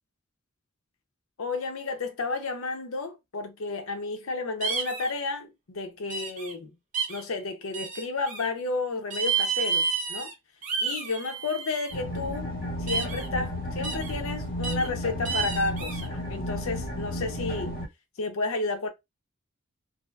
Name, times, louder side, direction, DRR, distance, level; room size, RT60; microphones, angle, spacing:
voice 1, 1.4-6.7 7.1-10.3 10.8-12.5 12.8-17.8 18.2-18.9, left 3 dB, 80° left, 0.6 m, -32 dB
sound 1, 4.6-5.1 6.1-6.5 6.9-7.2 7.7-8.5 9.1-10.3 10.6-11.9 12.9-13.3 13.8-14.1 14.6-14.9 15.2-16.1, right 5 dB, 40° right, 0.6 m, -30 dB
Spaceship Ambient, 11.9-17.8, equal, 45° left, 1.3 m, -33 dB
2.7 x 2.3 x 2.3 m
head